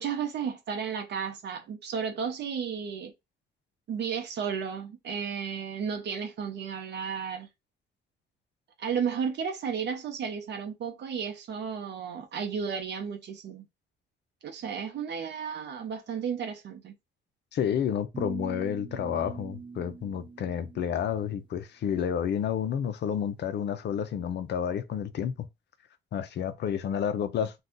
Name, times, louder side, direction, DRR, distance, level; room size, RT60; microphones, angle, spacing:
voice 1, 0.0-3.1 3.9-7.5 8.8-13.6 14.4-16.9, right 7 dB, 65° right, 0.8 m, -33 dB
voice 2, 17.5-25.5 26.1-27.5, left 8 dB, 65° left, 0.6 m, -30 dB
sound 1, 18.1-21.3, right 4 dB, 25° right, 0.6 m, -42 dB
2.6 x 2.3 x 3.6 m
cardioid pair, 75°, 19 cm